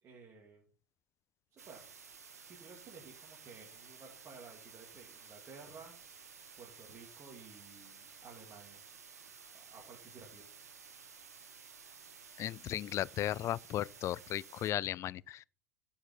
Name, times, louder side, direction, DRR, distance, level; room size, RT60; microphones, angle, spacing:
voice 1, 0.0-0.6 1.5-1.8 2.4-5.9 6.6-8.8 9.5-10.4, right 5 dB, 35° right, 2.8 m, -54 dB
sound 1, 1.6-14.7, right 6 dB, 80° right, 1.6 m, -54 dB
voice 2, 12.4-15.4, left 12 dB, 35° left, 0.4 m, -36 dB
11.5 x 5.6 x 5.5 m
figure-of-eight pair, 75°, 8 cm